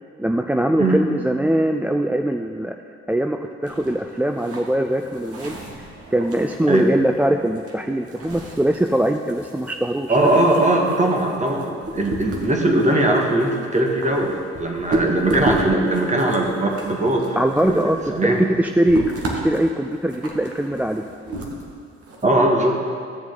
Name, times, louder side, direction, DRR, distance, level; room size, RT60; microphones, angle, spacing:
voice 1, 0.2-2.7 3.1-5.6 6.1-10.2 17.4-18.0 18.2-21.0, right 1 dB, 5° right, 5 dB, 0.4 m, -21 dB
sound 1, 3.6-22.2, right 2 dB, 50° right, 1.9 m, -32 dB
voice 2, 10.1-17.4 17.7-18.4 22.2-22.8, right 1 dB, 25° right, 1 dB, 1.9 m, -20 dB
14.0 x 7.1 x 3.9 m, 2.3 s
hypercardioid pair, 55°, 31 cm